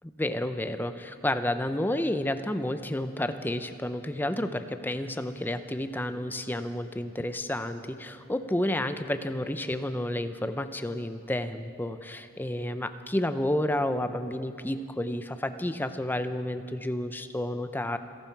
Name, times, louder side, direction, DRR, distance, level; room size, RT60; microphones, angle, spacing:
voice 1, 0.2-18.0, left 1 dB, 10° left, 10 dB, 0.5 m, -30 dB
26.5 x 11.5 x 4.6 m, 2.5 s
head